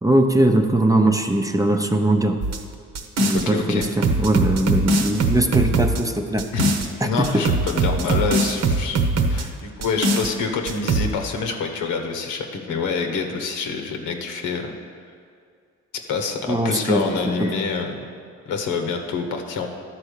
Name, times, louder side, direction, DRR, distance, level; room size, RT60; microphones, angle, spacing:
voice 1, 0.0-2.4 3.2-6.5 7.0-7.5 16.5-17.0 17.4-17.5, right 1 dB, 10° right, 4 dB, 0.6 m, -20 dB
sound 1, 2.4-3.5 3.8-6.9 7.2-9.5 9.8-10.3 10.7-11.1, right 2 dB, 60° right, 1.0 m, -21 dB
voice 2, 3.3-3.9 6.5-9.0 9.3-14.7 16.1-18.0 18.5-19.7, left 5 dB, 80° left, 4 dB, 1.1 m, -26 dB
12.0 x 4.3 x 6.6 m, 2.2 s
cardioid pair, 90°, 30 cm